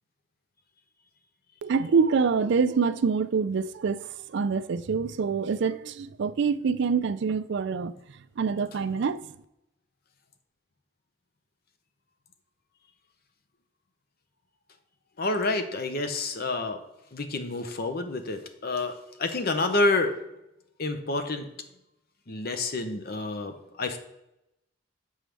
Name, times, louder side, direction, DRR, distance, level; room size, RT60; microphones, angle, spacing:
voice 1, 1.6-7.9 8.4-9.2, right 5 dB, 55° right, 0.3 m, -26 dB
voice 2, 15.2-16.8 17.1-20.2 20.8-21.5 22.3-24.0, left 2 dB, 50° left, 0.8 m, -28 dB
7.5 x 6.2 x 3.4 m
head